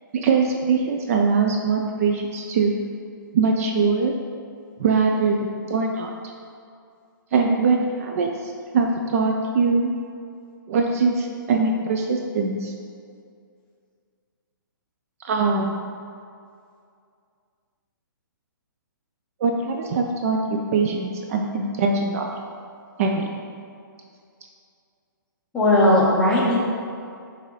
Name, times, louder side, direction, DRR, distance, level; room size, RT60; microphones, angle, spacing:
voice 1, 0.1-2.7 3.3-4.1 4.8-6.1 7.3-9.9 10.7-12.7 15.2-15.8 19.4-22.3 23.0-23.3, right 4 dB, 40° right, 2 dB, 0.3 m, -22 dB
voice 2, 25.5-26.6, left 1 dB, 10° left, -7 dB, 0.8 m, -17 dB
6.4 x 2.6 x 3.1 m, 2.3 s
hypercardioid pair, 140°, 11 cm